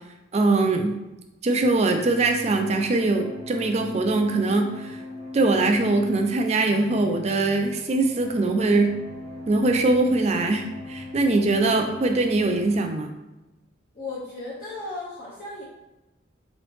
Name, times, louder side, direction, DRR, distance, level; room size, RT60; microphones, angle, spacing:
voice 1, 0.3-0.9 1.4-5.0 5.3-9.0 9.5-13.1, right 2 dB, 35° right, 4 dB, 0.4 m, -22 dB
sound 1, 1.6-12.8, left 2 dB, 15° left, 0.6 m, -39 dB
voice 2, 13.9-15.6, left 2 dB, 45° left, -9 dB, 0.9 m, -35 dB
3.9 x 3.0 x 3.2 m, 1.0 s
head